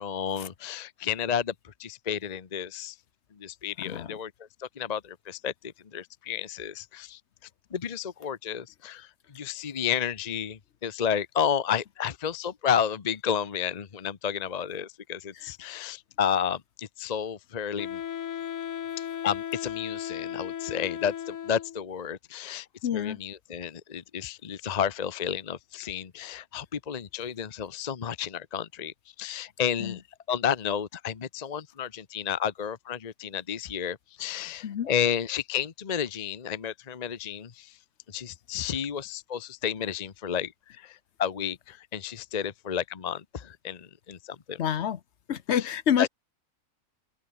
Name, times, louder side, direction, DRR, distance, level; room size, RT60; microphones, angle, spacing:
voice 1, 0.0-3.0 3.3-4.3 4.6-5.5 5.9-7.2 7.7-18.0 19.2-22.7 22.9-30.0 30.3-37.8 38.1-44.6 46.0-46.1, left 8 dB, 35° left, 0.9 m, -31 dB
voice 2, 3.8-4.2 15.3-15.5 22.8-23.2 29.8-30.0 34.6-34.9 44.6-45.0 45.3-46.1, left 9 dB, 60° left, 1.0 m, -28 dB
Wind instrument woodwind instrument, 17.8-21.9, left 9 dB, 75° left, 1.3 m, -36 dB
open air
omnidirectional pair, 1.4 m